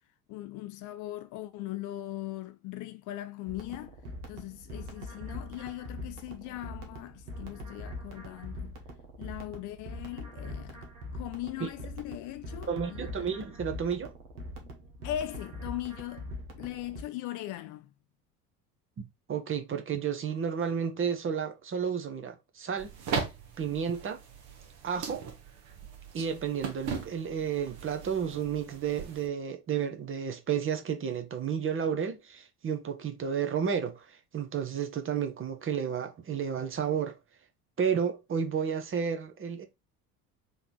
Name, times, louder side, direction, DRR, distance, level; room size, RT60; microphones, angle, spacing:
voice 1, 0.3-4.0 4.3-8.8 9.2-13.3 15.0-17.9, left 14 dB, 45° left, 0.4 m, -39 dB
sound 1, 3.4-17.0, left 1 dB, 75° right, 1.2 m, -42 dB
voice 2, 12.7-14.1 19.0-22.9 23.6-24.2 24.8-25.3 26.1-37.2 37.8-39.7, right 7 dB, 30° right, 0.8 m, -32 dB
sound 2, 22.8-29.3, right 5 dB, 55° right, 1.3 m, -39 dB
3.8 x 2.9 x 3.7 m
figure-of-eight pair, 60°, 46 cm